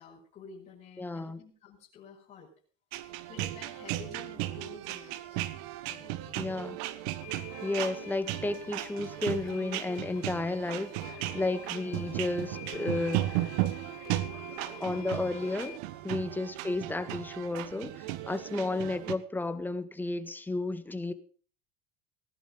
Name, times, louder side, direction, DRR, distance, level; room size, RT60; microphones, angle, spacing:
voice 1, 0.0-2.5 3.3-5.4 5.9-6.4 11.5-11.7 14.6-15.1 16.4-16.5, left 5 dB, 35° left, 5.8 m, -51 dB
voice 2, 1.0-1.4 6.4-6.8 7.6-13.5 14.8-15.8 16.0-21.1, left 2 dB, 10° left, 1.7 m, -33 dB
sound 1, 2.9-19.2, right 15 dB, 70° right, 1.4 m, -36 dB
sound 2, 7.2-15.8, left 17 dB, 85° left, 1.0 m, -49 dB
18.5 x 11.0 x 5.3 m
supercardioid pair, 100°, 19 cm